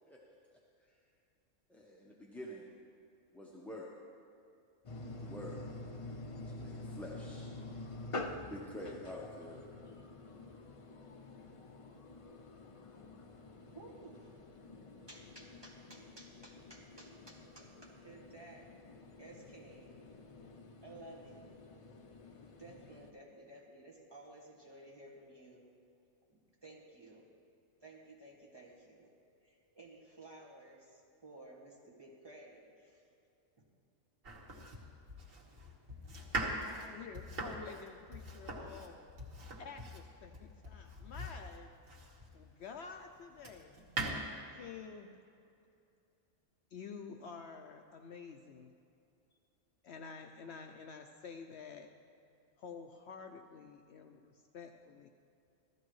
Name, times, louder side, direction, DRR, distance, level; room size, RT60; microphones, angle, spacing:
voice 1, 1.7-2.6 3.3-4.0 5.1-5.6 6.4-7.5 8.5-9.9, equal, ahead, -4 dB, 0.7 m, -48 dB
sound 1, 4.8-23.1, left 2 dB, 45° left, 0.4 m, -48 dB
voice 2, 13.7-14.4 15.1-18.7 19.2-20.0 20.8-21.5 22.2-25.6 26.3-27.3 27.8-29.1 29.4-33.1 33.6-33.7, right 2 dB, 20° right, -5 dB, 1.8 m, -55 dB
Domestic sounds home sounds, 34.2-42.4 43.0-44.1, right 1 dB, 80° right, 1.7 m, -42 dB
voice 3, 36.7-39.0 39.6-41.7 42.3-43.7 44.5-45.1 46.7-48.7 49.8-51.9 52.6-55.1, left 5 dB, 65° left, 5 dB, 0.8 m, -49 dB
15.5 x 13.5 x 3.1 m, 2.6 s
omnidirectional pair, 1.3 m